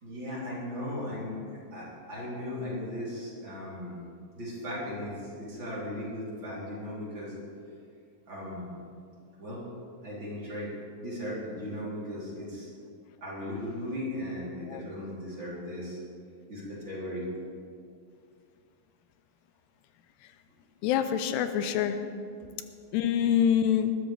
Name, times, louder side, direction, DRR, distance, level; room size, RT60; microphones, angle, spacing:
voice 1, 0.0-4.0 4.4-7.3 8.3-8.7 9.4-9.6 10.0-10.7 11.0-12.7 13.2-16.0 16.5-17.3, left 1 dB, 30° right, -7 dB, 3.7 m, -37 dB
voice 2, 20.8-22.0 22.9-23.9, left 9 dB, 90° left, 9 dB, 2.8 m, -25 dB
20.0 x 13.5 x 3.4 m, 2.3 s
omnidirectional pair, 4.8 m